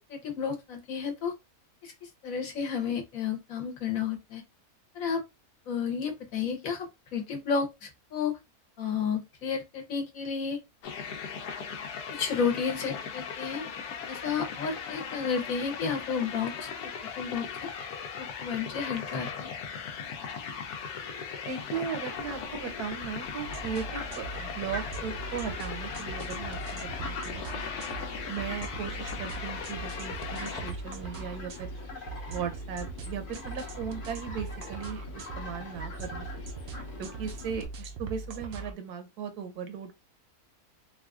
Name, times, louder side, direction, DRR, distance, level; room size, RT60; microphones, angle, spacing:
voice 1, 0.1-1.3 1.8-1.9 2.2-4.4 4.9-5.2 5.7-6.9 7.1-8.4 8.8-10.6 12.1-13.6 14.1-16.7 17.2-17.5 18.2-19.5, left 6 dB, 65° left, 1.2 m, -31 dB
sound 1, 10.8-30.7, left 6 dB, 85° left, 1.2 m, -38 dB
voice 2, 21.5-27.6 28.3-31.7 32.3-36.3 37.0-39.9, right 7 dB, 85° right, 1.3 m, -37 dB
Fowl, 22.1-37.6, left 2 dB, 50° left, 0.7 m, -44 dB
sound 2, 23.4-38.7, right 3 dB, 65° right, 0.6 m, -41 dB
3.7 x 2.4 x 2.3 m
omnidirectional pair, 1.6 m